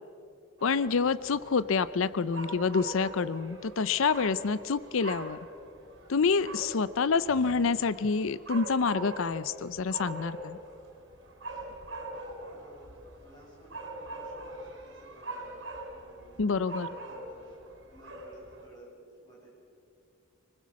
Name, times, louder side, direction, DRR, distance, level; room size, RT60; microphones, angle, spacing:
voice 1, 0.6-5.4 6.1-10.6 16.4-16.9, left 5 dB, 70° left, 16 dB, 0.5 m, -27 dB
sound 1, 0.6-18.7, right 2 dB, 55° right, 4.4 m, -43 dB
voice 2, 12.4-16.4 16.9-17.5 17.9-19.5, right 1 dB, 20° left, -4 dB, 7.6 m, -56 dB
25.0 x 20.5 x 7.4 m, 2.5 s
head